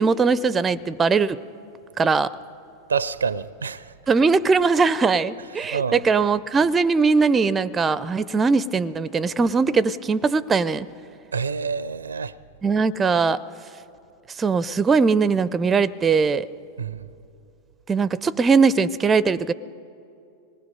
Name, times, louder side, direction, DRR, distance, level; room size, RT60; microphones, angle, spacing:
voice 1, 0.0-1.4 2.0-2.3 4.1-10.9 12.6-13.4 14.4-16.5 17.9-19.5, right 4 dB, 20° right, 0.4 m, -20 dB
voice 2, 2.9-3.9 5.7-6.0 11.3-12.3 16.8-17.1, right 6 dB, 75° right, 0.4 m, -27 dB
26.0 x 19.5 x 5.3 m
figure-of-eight pair, 90°, 0 cm